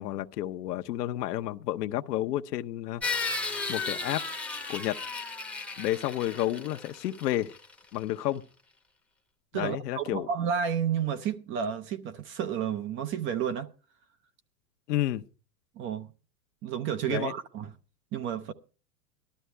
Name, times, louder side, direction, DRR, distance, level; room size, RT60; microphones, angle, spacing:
voice 1, 0.0-4.3 4.7-5.0 5.8-7.5 7.9-8.4 9.5-10.3 14.9-15.2 17.1-17.3, left 13 dB, 70° left, 1.0 m, -31 dB
sound 1, 3.0-7.7, left 4 dB, 5° left, 0.9 m, -34 dB
voice 2, 9.5-13.7 15.8-16.1 16.6-17.7 18.1-18.5, right 8 dB, 25° right, 0.6 m, -31 dB
18.0 x 12.5 x 3.3 m
hypercardioid pair, 130°, 50 cm